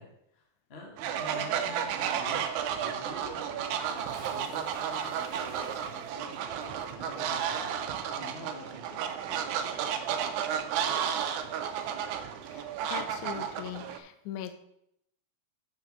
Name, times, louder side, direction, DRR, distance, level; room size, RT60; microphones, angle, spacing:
voice 1, 0.0-9.4, left 2 dB, 55° left, 0 dB, 0.7 m, -49 dB
Fowl, 1.0-14.0, right 8 dB, 80° right, 1.8 m, -32 dB
Bathtub (filling or washing) / Splash splatter, 3.8-8.7 9.0-9.1, right 4 dB, 55° right, 2.3 m, -54 dB
voice 2, 12.5-14.5, left 10 dB, 80° left, 9 dB, 1.8 m, -40 dB
6.8 x 6.2 x 5.2 m, 0.76 s
omnidirectional pair, 4.1 m